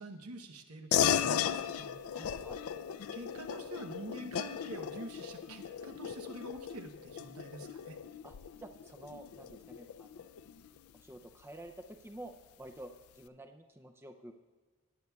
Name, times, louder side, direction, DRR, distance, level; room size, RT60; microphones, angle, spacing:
voice 1, 0.0-1.9 3.1-8.0, right 2 dB, 85° right, 6 dB, 0.9 m, -46 dB
sound 1, 0.9-10.8, left 8 dB, 80° left, 0.4 m, -36 dB
voice 2, 2.1-2.6 8.2-10.3 10.9-14.3, right 1 dB, 10° right, 5 dB, 0.4 m, -50 dB
18.0 x 9.4 x 2.3 m, 1.4 s
head